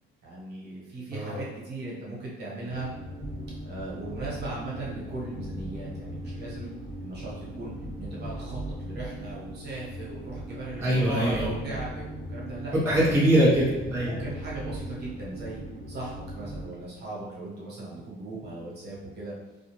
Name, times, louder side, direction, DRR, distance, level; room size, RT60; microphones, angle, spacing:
voice 1, 0.2-2.9 3.6-6.7 7.0-7.7 8.0-12.7 14.0-15.6 15.9-19.3, right 2 dB, 50° right, -5 dB, 1.0 m, -38 dB
voice 2, 1.1-1.4 10.8-11.6 12.7-14.1, right 1 dB, 10° right, -7 dB, 0.4 m, -23 dB
sound 1, 2.7-16.7, right 1 dB, 85° left, 1.0 m, -38 dB
2.4 x 2.2 x 2.9 m, 1.1 s
cardioid pair, 160°, 21 cm